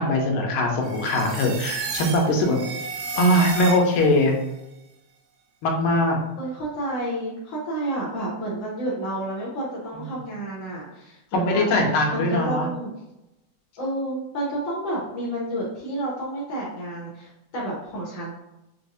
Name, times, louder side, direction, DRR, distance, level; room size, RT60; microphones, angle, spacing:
voice 1, 0.0-2.6 3.2-4.4 5.6-6.2 9.9-10.0 11.3-12.7, left 1 dB, 90° left, 1 dB, 2.1 m, -21 dB
sound 1, 0.8-4.2, right 4 dB, 80° right, 1.9 m, -32 dB
voice 2, 6.4-11.7 12.1-12.9 13.8-18.3, right 1 dB, 70° left, -5 dB, 1.1 m, -30 dB
5.7 x 2.0 x 2.5 m, 0.93 s
omnidirectional pair, 3.3 m